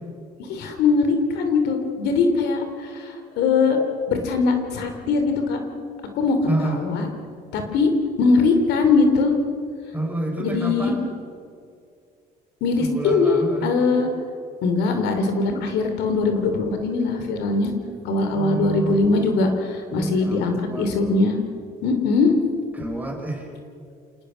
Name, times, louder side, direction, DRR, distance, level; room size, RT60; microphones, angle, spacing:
voice 1, 0.5-3.8 4.1-5.6 6.1-7.1 7.5-7.9 8.2-9.3 10.4-10.9 12.6-14.1 14.6-17.7 18.0-21.4 21.8-22.3, left 4 dB, 85° left, 6 dB, 3.2 m, -21 dB
voice 2, 6.5-6.8 9.9-11.0 12.8-13.8 18.3-19.1 19.9-20.9 22.7-23.5, right 2 dB, 10° right, 1 dB, 5.3 m, -28 dB
28.0 x 19.0 x 6.4 m, 2.3 s
cardioid pair, 110°, 17 cm